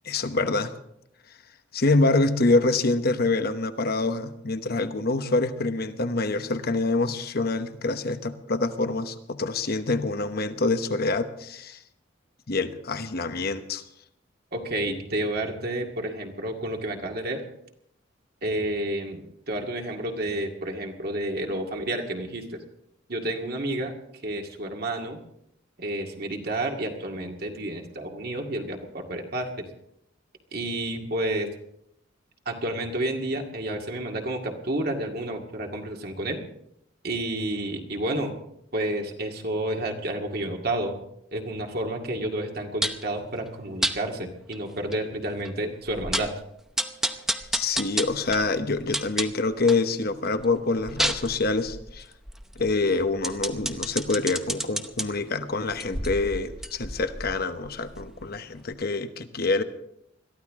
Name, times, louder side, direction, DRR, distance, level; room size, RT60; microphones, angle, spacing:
voice 1, 0.0-0.7 1.7-11.8 12.5-13.8 47.5-52.1 52.6-59.6, left 3 dB, 55° left, 10 dB, 1.0 m, -26 dB
voice 2, 14.5-17.4 18.4-22.6 23.1-23.9 24.2-25.2 25.8-29.5 30.5-31.5 32.5-36.4 37.0-38.3 38.7-40.9 41.3-46.3, right 1 dB, 55° right, 2 dB, 2.1 m, -30 dB
sound 1, 42.8-43.1 43.8-44.0 44.5-44.6 44.9-45.0 45.5-45.6 45.9-46.4 46.8-49.9 50.3-55.1 55.7-58.4 58.7-58.8, right 1 dB, 5° right, 0.7 m, -31 dB
22.0 x 14.0 x 3.7 m, 0.75 s
head